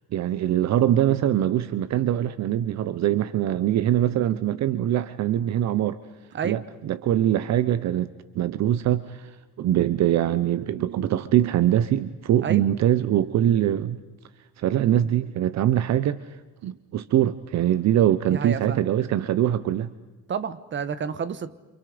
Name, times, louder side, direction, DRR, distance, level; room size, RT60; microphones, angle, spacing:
voice 1, 0.1-6.0 6.4-9.3 9.6-14.0 14.6-16.2 16.6-19.9, right 11 dB, 55° right, 13 dB, 1.1 m, -23 dB
voice 2, 18.3-18.8 20.3-21.5, right 7 dB, 35° right, 13 dB, 1.5 m, -30 dB
29.5 x 28.5 x 5.2 m, 1.2 s
cardioid pair, 135°, 32 cm